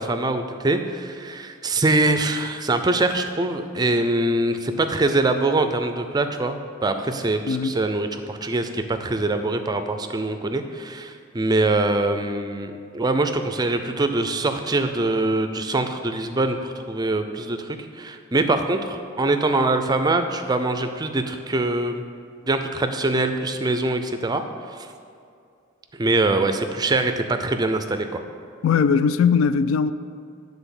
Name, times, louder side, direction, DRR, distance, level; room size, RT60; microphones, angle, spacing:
voice 1, 0.0-22.0 22.4-24.4 24.7-24.9 25.9-28.2, right 2 dB, 20° right, 0.4 m, -23 dB
voice 2, 28.6-29.9, left 6 dB, 75° left, 0.3 m, -19 dB
9.1 x 3.9 x 7.1 m
head